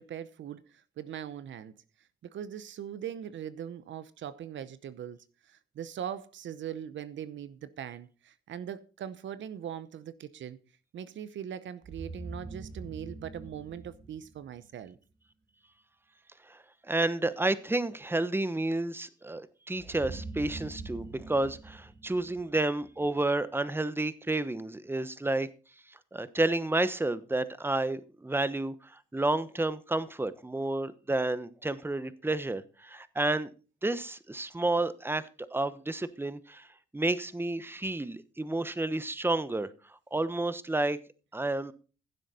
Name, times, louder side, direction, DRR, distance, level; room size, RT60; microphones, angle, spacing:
voice 1, 0.0-1.7 2.2-5.2 5.4-10.6 10.9-15.0, right 9 dB, 75° right, 0.8 m, -41 dB
sound 1, 11.8-14.8 19.8-23.0, right 3 dB, 50° right, 4.1 m, -44 dB
voice 2, 16.5-25.5 26.1-33.5 33.8-36.7 36.9-39.7 40.1-41.0 41.3-41.7, right 2 dB, 10° right, 1.0 m, -30 dB
15.5 x 7.6 x 4.2 m
cardioid pair, 65°, 20 cm